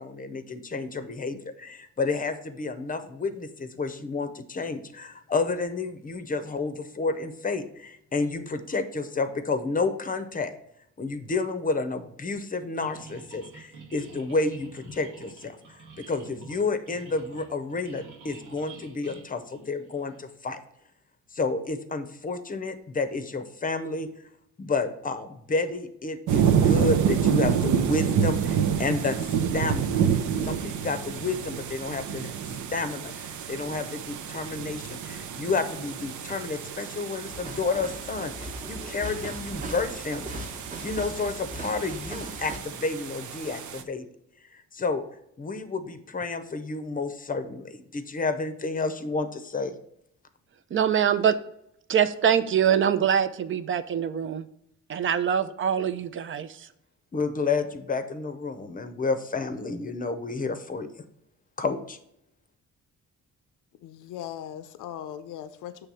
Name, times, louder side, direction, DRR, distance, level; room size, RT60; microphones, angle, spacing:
voice 1, 0.0-10.5 11.0-20.6 21.3-24.1 24.6-30.0 30.4-32.3 32.7-40.4 40.8-44.1 44.5-45.0 45.4-49.7 57.1-61.0 61.6-62.0, left 3 dB, 25° left, 10 dB, 0.7 m, -30 dB
sound 1, 12.8-20.2, right 4 dB, 90° right, 1.6 m, -48 dB
sound 2, 26.3-43.8, right 7 dB, 75° right, 0.7 m, -28 dB
sound 3, 37.3-42.6, right 1 dB, 25° right, 1.1 m, -39 dB
voice 2, 50.7-51.4 51.9-54.4 54.9-56.7, right 8 dB, 40° right, 12 dB, 0.5 m, -24 dB
voice 3, 63.8-65.9, left 10 dB, 85° left, 10 dB, 0.6 m, -39 dB
6.9 x 3.3 x 6.1 m, 0.77 s
cardioid pair, 120°, 30 cm